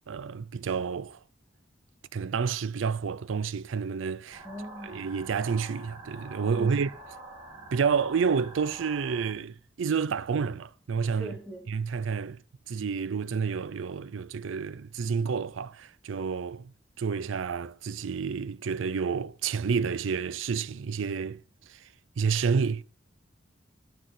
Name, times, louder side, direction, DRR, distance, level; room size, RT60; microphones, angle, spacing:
voice 1, 0.1-1.2 2.1-4.4 4.9-6.9 7.7-11.3 11.7-12.4 12.7-16.7 17.0-21.4 21.7-21.9 22.2-22.8, right 6 dB, 90° right, 0.4 m, -29 dB
sound 1, 4.3-9.3, right 2 dB, 25° right, 3.0 m, -46 dB
voice 2, 4.4-5.0 6.5-6.9 11.2-11.7, right 1 dB, ahead, 2.1 m, -41 dB
9.1 x 6.2 x 8.1 m
head